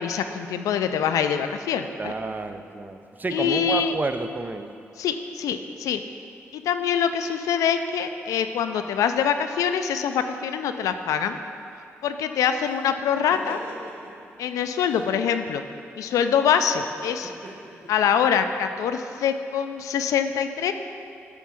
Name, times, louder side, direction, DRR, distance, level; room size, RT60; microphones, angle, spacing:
voice 1, 0.0-2.1 3.3-3.9 5.0-6.0 6.5-11.4 12.0-13.6 14.4-15.6 16.0-17.3 17.9-20.7, left 8 dB, 85° left, 8 dB, 0.3 m, -24 dB
voice 2, 2.0-4.7, right 3 dB, 30° right, 8 dB, 0.5 m, -30 dB
sound 1, 12.6-14.3 14.8-15.1 17.0-18.7, right 1 dB, 80° right, 1.8 m, -44 dB
8.2 x 3.5 x 6.1 m, 2.5 s
supercardioid pair, 50°, 6 cm